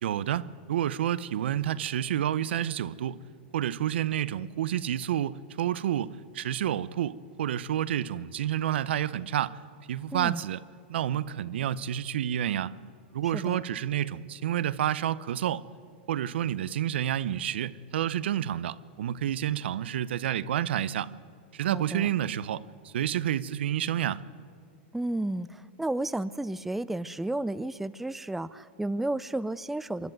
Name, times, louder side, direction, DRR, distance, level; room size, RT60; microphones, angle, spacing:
voice 1, 0.0-3.2 3.5-9.6 9.9-10.6 10.9-12.7 13.1-15.6 16.1-21.1 21.5-24.2, right 11 dB, 75° right, 0.6 m, -29 dB
voice 2, 21.7-22.1 24.9-30.1, right 1 dB, 5° right, 0.4 m, -32 dB
24.5 x 12.0 x 9.1 m
hypercardioid pair, 125°, 6 cm